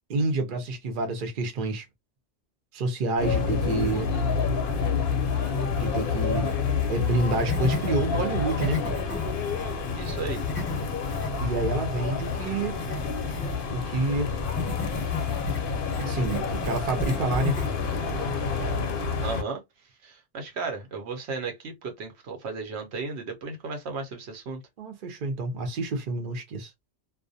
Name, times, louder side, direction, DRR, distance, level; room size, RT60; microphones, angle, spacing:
voice 1, 0.1-1.8 2.7-4.1 5.8-6.5 6.9-8.8 11.4-12.8 13.7-14.3 16.0-17.6 24.8-26.7, right 3 dB, 55° right, 0.8 m, -28 dB
sound 1, 3.2-19.4, left 5 dB, 60° left, 0.7 m, -28 dB
sound 2, 3.4-4.2 4.6-7.9 8.3-13.7 14.4-17.9, left 2 dB, 10° left, 0.9 m, -36 dB
voice 2, 9.9-10.4 19.2-19.6 20.0-24.6, right 4 dB, 75° right, 0.9 m, -34 dB
2.3 x 2.1 x 2.6 m
omnidirectional pair, 1.1 m